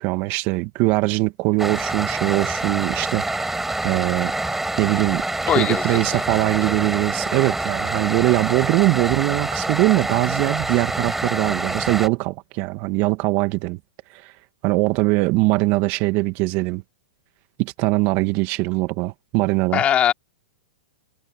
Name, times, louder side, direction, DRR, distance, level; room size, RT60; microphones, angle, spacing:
voice 1, 0.0-5.2 5.6-13.8 14.2-14.3 14.6-16.8 17.6-19.8, right 23 dB, 45° right, 2.3 m, -22 dB
sound 1, 1.6-12.1, right 2 dB, 5° right, 5.8 m, -26 dB
voice 2, 5.5-6.2 19.7-20.1, left 10 dB, 25° left, 3.8 m, -21 dB
hypercardioid pair, 130°, 5 cm